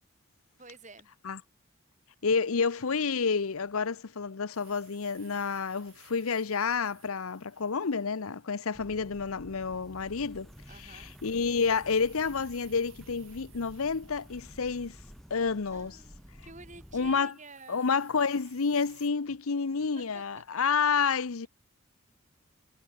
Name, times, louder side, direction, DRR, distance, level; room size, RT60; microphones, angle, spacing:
voice 1, 0.6-1.1 10.7-11.1 15.7-18.0 20.0-20.2 20.6-20.7, right 3 dB, 35° right, 6.8 m, -50 dB
voice 2, 2.2-10.5 10.8-15.0 15.3-16.0 16.9-17.3 17.7-21.5, left 5 dB, 75° left, 0.7 m, -29 dB
sound 1, 4.5-19.1, right 11 dB, 65° right, 7.2 m, -61 dB
sound 2, 8.7-17.2, equal, ahead, 6.2 m, -51 dB
head